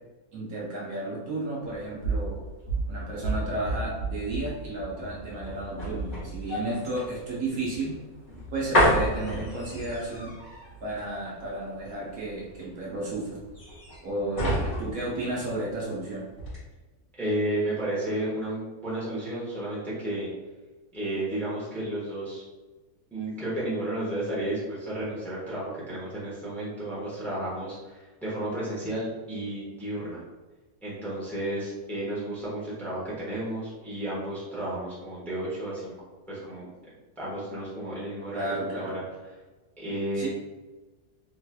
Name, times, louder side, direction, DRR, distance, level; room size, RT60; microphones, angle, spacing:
voice 1, 0.3-2.4 2.9-8.0 8.5-10.3 10.8-13.4 14.0-14.5 14.8-16.2 38.3-39.0 40.2-40.3, right 2 dB, 65° right, -5 dB, 1.2 m, -33 dB
sound 1, 1.6-16.0 16.3-16.6, right 1 dB, 50° left, 1.9 m, -30 dB
voice 2, 17.1-20.3 20.9-22.4 23.1-30.2 30.8-35.9 36.3-36.7 37.2-39.0 39.8-40.3, right 1 dB, ahead, -8 dB, 1.0 m, -32 dB
3.8 x 3.1 x 2.2 m, 1.2 s
omnidirectional pair, 1.7 m